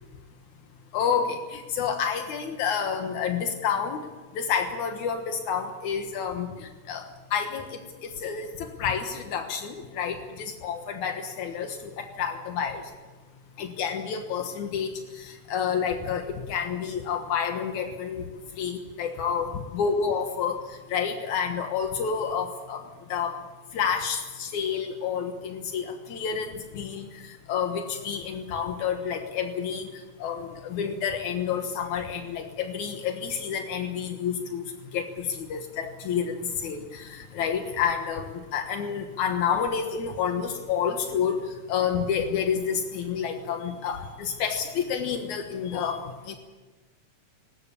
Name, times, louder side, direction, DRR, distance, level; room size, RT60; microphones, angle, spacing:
voice 1, 0.9-4.0 4.4-12.8 13.6-18.2 18.6-22.8 23.1-23.4 23.7-29.9 30.2-34.6 34.9-46.3, left 7 dB, 85° left, 5 dB, 2.8 m, -29 dB
21.0 x 18.5 x 8.5 m, 1.3 s
omnidirectional pair, 3.3 m